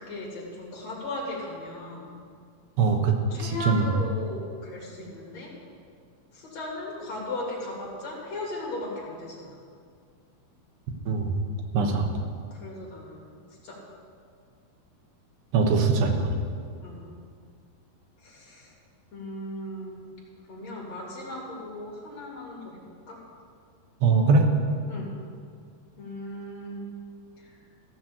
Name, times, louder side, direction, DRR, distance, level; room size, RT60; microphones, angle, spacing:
voice 1, 0.0-2.2 3.3-5.5 6.3-9.6 11.8-12.0 12.5-13.8 16.8-17.0 18.2-18.7 19.1-20.0 20.5-22.8 23.1-23.2 24.9-25.1 26.0-26.8 27.4-27.6, left 1 dB, 45° left, -4 dB, 3.0 m, -37 dB
voice 2, 2.8-3.8 11.1-11.3 11.7-12.1 15.5-16.3 24.0-24.5, right 4 dB, 85° right, 2 dB, 3.4 m, -22 dB
15.0 x 6.2 x 8.4 m, 2.2 s
omnidirectional pair, 4.8 m